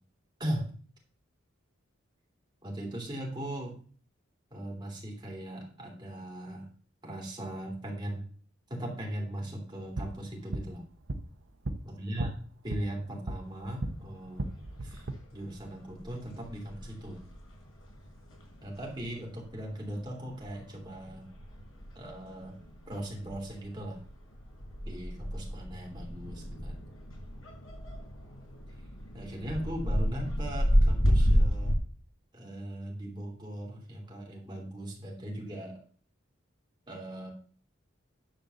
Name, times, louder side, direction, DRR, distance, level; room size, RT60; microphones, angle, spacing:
voice 1, 0.4-0.7 2.6-3.8 4.5-6.7 7.0-8.3 8.7-10.8 11.8-14.5 14.8-15.0 15.3-17.2 18.6-21.3 21.9-22.6 22.9-24.0 24.8-26.8 29.1-31.8 32.3-35.8 36.9-37.3, right 1 dB, 20° right, 0 dB, 2.8 m, -39 dB
sound 1, 9.7-14.0 14.3-15.1, right 2 dB, 75° right, 1.0 m, -37 dB
sound 2, 13.4-31.8, equal, 90° left, 5.8 m, -32 dB
10.5 x 4.1 x 6.9 m, 0.43 s
head